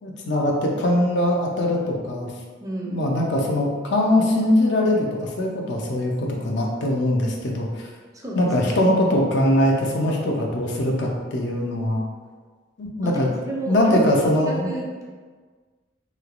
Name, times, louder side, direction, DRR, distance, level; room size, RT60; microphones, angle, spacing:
voice 1, 0.0-2.3 2.9-7.9 8.4-12.0 12.8-13.3 13.7-14.7, left 1 dB, 65° left, 0 dB, 0.5 m, -22 dB
voice 2, 2.6-3.1 8.1-8.5 13.0-14.0 14.4-15.0, right 2 dB, 20° right, -3 dB, 0.4 m, -32 dB
3.2 x 2.9 x 2.4 m, 1.5 s
head